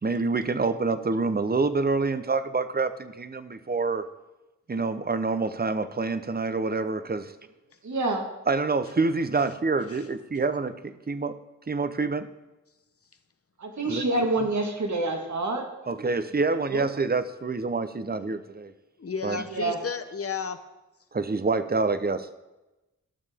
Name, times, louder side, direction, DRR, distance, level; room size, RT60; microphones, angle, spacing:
voice 1, 0.0-4.0 4.7-7.3 8.5-11.3 11.7-12.3 13.9-14.0 15.9-18.7 19.2-19.4 21.1-22.5, right 3 dB, 30° right, 12 dB, 0.8 m, -27 dB
voice 2, 7.8-8.2 13.6-15.9 16.7-16.9 19.5-19.8, right 2 dB, 65° right, 3 dB, 1.8 m, -27 dB
voice 3, 19.0-20.6, left 5 dB, 50° left, 9 dB, 0.8 m, -32 dB
14.0 x 6.5 x 3.6 m, 1.0 s
cardioid pair, 40°, 31 cm